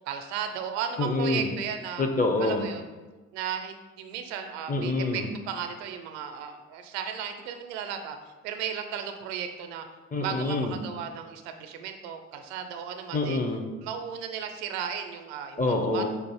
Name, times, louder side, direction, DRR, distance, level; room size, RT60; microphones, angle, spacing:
voice 1, 0.1-2.0 2.4-2.9 3.3-8.2 8.4-9.9 10.2-13.4 13.8-15.6 15.9-16.1, right 8 dB, 65° right, 6 dB, 0.5 m, -35 dB
voice 2, 1.0-1.5 2.0-2.6 4.7-5.3 10.1-10.8 13.1-13.7 15.6-16.1, left 2 dB, 20° left, 4 dB, 0.6 m, -26 dB
4.7 x 2.4 x 4.7 m, 1.2 s
figure-of-eight pair, 45°, 39 cm